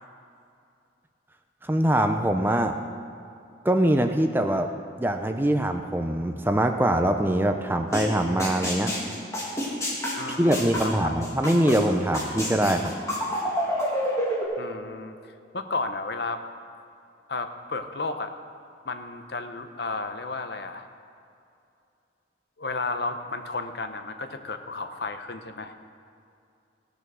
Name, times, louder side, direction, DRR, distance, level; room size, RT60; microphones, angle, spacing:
voice 1, 1.6-2.8 3.6-4.7 5.0-8.9 10.4-12.9, right 1 dB, 10° right, 6 dB, 0.5 m, -23 dB
sound 1, 7.9-8.0 8.4-11.8 12.1-14.4, equal, 15° left, 2.1 m, -28 dB
voice 2, 10.2-11.3 14.6-15.1 15.5-16.4 17.3-18.3 18.9-20.9 22.6-25.7, left 3 dB, 55° left, 8 dB, 0.8 m, -33 dB
16.0 x 6.8 x 6.2 m, 2.6 s
head